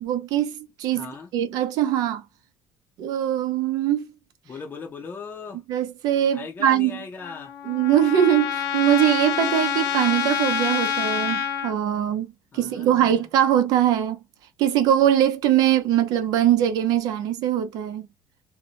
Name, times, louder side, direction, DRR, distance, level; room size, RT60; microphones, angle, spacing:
voice 1, 0.0-2.2 3.0-4.1 5.7-7.0 7.6-14.2 14.6-18.1, right 11 dB, 70° right, 0.7 m, -22 dB
voice 2, 0.9-1.3 4.5-5.6 6.3-7.5 12.1-12.2 12.5-13.3, left 5 dB, 30° left, 0.6 m, -39 dB
Trumpet, 7.2-11.7, left 8 dB, 70° left, 0.8 m, -27 dB
2.7 x 2.1 x 2.8 m
cardioid pair, 100°, 7 cm